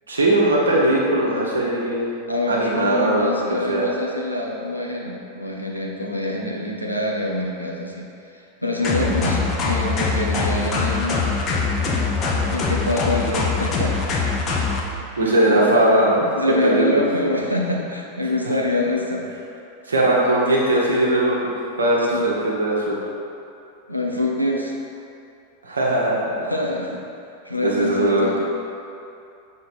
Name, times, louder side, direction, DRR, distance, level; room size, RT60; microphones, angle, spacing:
voice 1, 0.1-2.1 2.5-3.8 8.8-9.1 15.2-16.3 16.6-16.9 19.9-21.5 21.8-23.0 25.6-26.5 27.6-28.4, right 1 dB, 75° right, -4 dB, 1.2 m, -19 dB
voice 2, 2.3-11.3 12.5-14.1 15.5-15.8 16.4-19.3 22.1-22.3 23.9-24.7 26.5-27.0 27.4-28.4, left 2 dB, 90° left, -2 dB, 0.8 m, -25 dB
sound 1, 8.8-14.8, left 4 dB, 30° left, 0.8 m, -23 dB
6.6 x 3.7 x 4.4 m, 2.6 s
figure-of-eight pair, 90°, 0 cm